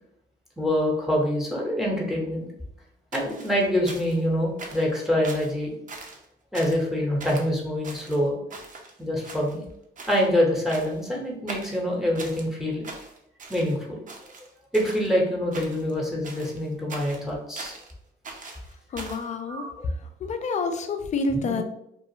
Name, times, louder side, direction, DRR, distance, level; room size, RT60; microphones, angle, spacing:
voice 1, 0.6-2.4 3.1-5.7 6.5-8.4 9.0-9.6 10.1-12.8 13.5-14.0 14.7-17.7 19.4-19.9 21.3-21.6, equal, ahead, -1 dB, 0.8 m, -25 dB
sound 1, 3.1-4.3 4.6-4.9 5.2-5.5 5.9-6.2 6.5-6.9 7.2-7.5 7.8-8.9 9.2-9.7 10.0-10.3 10.7-11.1 11.5-12.5 12.8-13.8 14.1-15.1 15.5-15.9 16.2-17.9 18.2-19.3, right 3 dB, 40° right, 0.5 m, -41 dB
voice 2, 18.9-19.7 20.2-21.6, left 3 dB, 35° left, 7 dB, 0.4 m, -28 dB
2.4 x 2.3 x 2.7 m, 0.76 s
cardioid pair, 90°, 20 cm